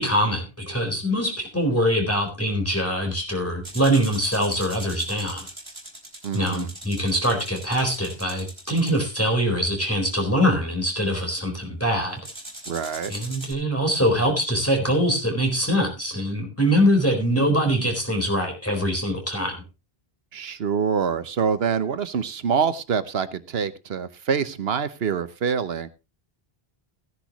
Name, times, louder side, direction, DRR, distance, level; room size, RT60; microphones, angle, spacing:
voice 1, 0.0-5.5 6.3-12.2 13.1-19.6, equal, 15° left, 2 dB, 4.1 m, -23 dB
sound 1, 3.6-9.0 12.2-13.5, right 1 dB, 25° right, 3.7 m, -41 dB
voice 2, 6.2-6.7 12.7-13.1 20.3-25.9, right 6 dB, 75° right, 12 dB, 1.2 m, -25 dB
16.5 x 10.5 x 3.0 m, 0.28 s
omnidirectional pair, 1.0 m